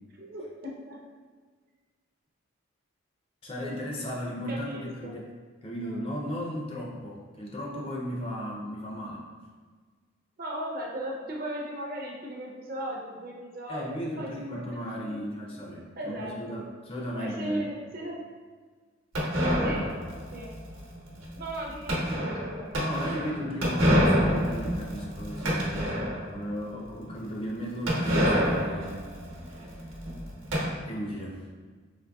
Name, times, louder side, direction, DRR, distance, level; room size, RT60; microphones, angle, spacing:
voice 1, 0.1-1.0 4.5-5.2 10.4-15.3 16.0-16.6 17.1-18.2 19.6-19.9 20.3-20.5 21.4-22.8, right 1 dB, 45° right, -2 dB, 0.5 m, -37 dB
voice 2, 3.4-5.2 5.6-9.3 13.7-17.7 19.6-19.8 22.8-29.1 30.9-31.5, equal, 30° left, -2 dB, 0.4 m, -35 dB
sound 1, 19.1-26.4 26.8-26.9 27.1-27.2 27.9-30.6, equal, 75° right, 1.0 m, -27 dB
3.9 x 2.8 x 2.3 m, 1.5 s
head